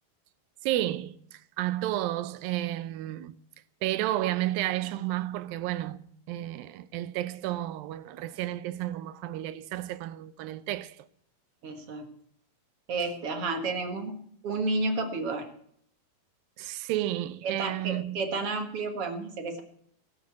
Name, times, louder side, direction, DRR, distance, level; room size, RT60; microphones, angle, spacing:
voice 1, 0.6-3.3 3.8-6.0 6.3-11.0 16.6-18.2, right 14 dB, 80° right, 2.2 m, -32 dB
voice 2, 11.6-12.1 12.9-15.5 17.4-19.6, right 3 dB, 50° right, 1.8 m, -31 dB
17.5 x 8.1 x 8.3 m
omnidirectional pair, 4.6 m